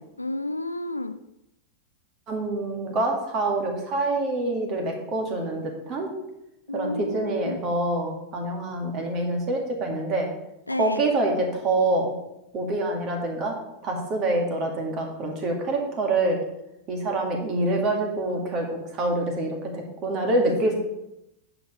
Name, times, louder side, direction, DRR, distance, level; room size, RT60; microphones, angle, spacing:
voice 1, 0.2-1.2 6.7-7.6 10.7-11.1, left 2 dB, 85° left, 11 dB, 0.4 m, -31 dB
voice 2, 2.3-6.1 6.7-10.3 10.8-12.2 12.5-13.5 13.8-16.4 16.9-20.7, right 2 dB, 35° right, 2 dB, 2.0 m, -26 dB
9.0 x 5.1 x 5.1 m, 0.87 s
figure-of-eight pair, 90°, 0 cm